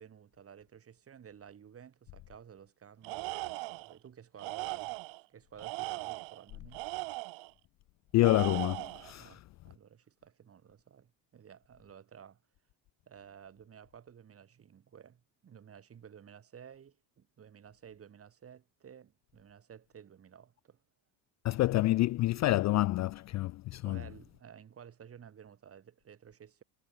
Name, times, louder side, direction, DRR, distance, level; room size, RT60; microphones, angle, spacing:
voice 1, 0.0-5.0 5.3-6.8 9.2-12.4 13.1-20.8 23.8-26.6, right 8 dB, 30° right, 3.5 m, -54 dB
Tools, 3.0-3.9 4.4-5.2 5.6-7.5 8.2-9.1, right 26 dB, 65° right, 1.2 m, -39 dB
voice 2, 8.1-9.3 21.4-24.0, left 17 dB, 40° left, 0.4 m, -28 dB
cardioid pair, 140°, 47 cm